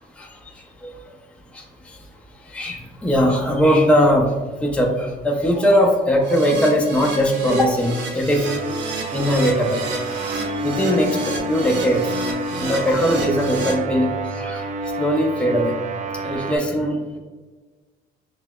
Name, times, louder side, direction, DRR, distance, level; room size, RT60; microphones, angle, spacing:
voice 1, 2.5-4.3 4.6-8.5 9.1-9.8 10.4-12.1 12.5-14.7 15.0-15.8 16.2-17.2, equal, 5° left, 0 dB, 0.6 m, -20 dB
Keyboard (musical), 6.2-13.7, right 3 dB, 75° right, 0.9 m, -31 dB
sound 1, 8.4-16.6, right 2 dB, 40° right, 0.4 m, -29 dB
5.6 x 2.0 x 2.2 m, 1.3 s
supercardioid pair, 80°, 20 cm